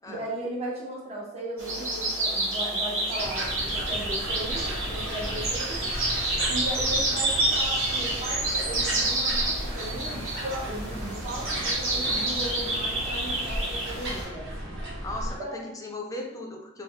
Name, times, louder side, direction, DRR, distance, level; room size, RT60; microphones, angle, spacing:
voice 1, 0.1-5.9 6.5-14.5 15.4-15.6, right 1 dB, 30° right, -4 dB, 0.6 m, -36 dB
sound 1, 1.6-14.2, right 2 dB, 80° right, 1.4 m, -29 dB
sound 2, 3.2-15.4, equal, 55° right, 1.1 m, -35 dB
voice 2, 15.0-16.8, left 2 dB, 15° left, 0 dB, 0.5 m, -37 dB
3.6 x 2.0 x 3.3 m, 0.83 s
head